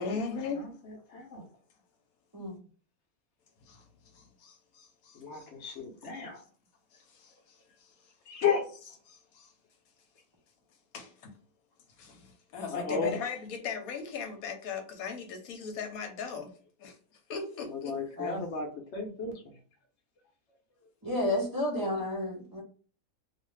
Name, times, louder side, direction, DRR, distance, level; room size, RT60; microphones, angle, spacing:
voice 1, 0.0-0.6 3.6-3.9 4.1-5.8 6.1-6.4 6.9-7.9 9.1-9.5 10.9-11.3 12.0-16.5 16.8-17.0 17.3-17.9, left 5 dB, 80° left, 1.1 m, -39 dB
voice 2, 0.6-1.5 5.1-6.4 8.3-8.6 12.7-13.1 17.8-19.3, left 5 dB, 60° left, 0.9 m, -33 dB
voice 3, 21.0-22.6, left 1 dB, 35° right, 0.3 m, -31 dB
2.5 x 2.4 x 3.2 m
omnidirectional pair, 1.5 m